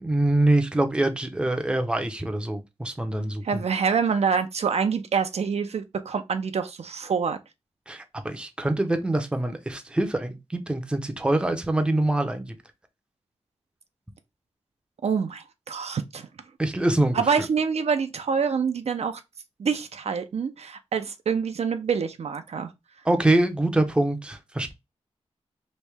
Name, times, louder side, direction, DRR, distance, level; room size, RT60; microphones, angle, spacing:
voice 1, 0.0-3.6 7.9-12.6 16.6-17.4 23.0-24.7, right 1 dB, 10° right, 0.5 m, -24 dB
voice 2, 3.4-7.4 15.0-16.3 17.1-19.2 19.6-22.7, right 6 dB, 70° right, 0.4 m, -26 dB
3.1 x 2.7 x 3.3 m
wide cardioid pair, 130°, 11 cm